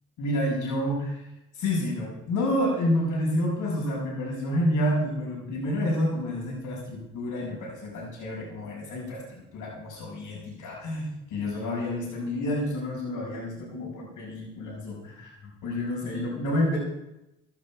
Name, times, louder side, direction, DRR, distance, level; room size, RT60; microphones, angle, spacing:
voice 1, 0.2-1.2 1.5-16.8, left 1 dB, 80° left, -7 dB, 5.3 m, -29 dB
16.5 x 12.5 x 4.6 m, 0.92 s
supercardioid pair, 50°, 31 cm